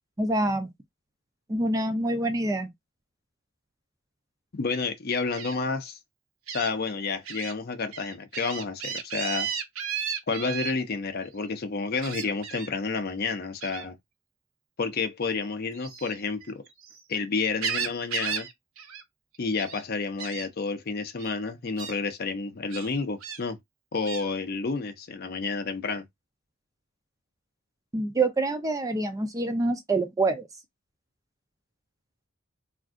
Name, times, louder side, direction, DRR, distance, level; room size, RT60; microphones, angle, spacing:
voice 1, 0.2-0.7 1.5-2.7 27.9-30.5, right 2 dB, 15° right, 0.3 m, -26 dB
voice 2, 4.5-6.0 6.5-9.5 10.3-14.0 14.8-16.6 17.1-18.5 19.4-23.6 23.9-26.0, left 4 dB, 45° left, 0.5 m, -30 dB
Gull seagull, 5.3-5.5 6.5-6.7 7.2-7.5 7.9-10.7 12.0-12.7 13.6-13.9 15.7-17.0 17.4-18.5 18.8-19.0 19.3-19.8 20.2-20.5 21.2-21.3 21.8-22.0 22.7-23.4 24.0-24.2, right 7 dB, 75° right, 0.6 m, -34 dB
2.5 x 2.3 x 3.5 m
head